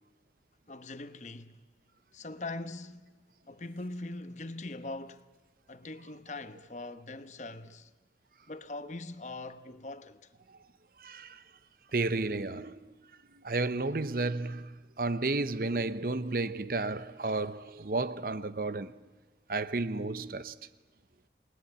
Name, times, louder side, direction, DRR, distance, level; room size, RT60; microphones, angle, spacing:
voice 1, 0.7-1.6 2.1-3.1 3.5-5.3 5.7-7.9 8.5-10.2, left 2 dB, 40° left, 1.0 m, -41 dB
voice 2, 11.0-11.4 11.9-12.9 13.3-19.0 19.5-20.5, right 3 dB, 55° right, 0.8 m, -32 dB
28.0 x 20.0 x 8.7 m
head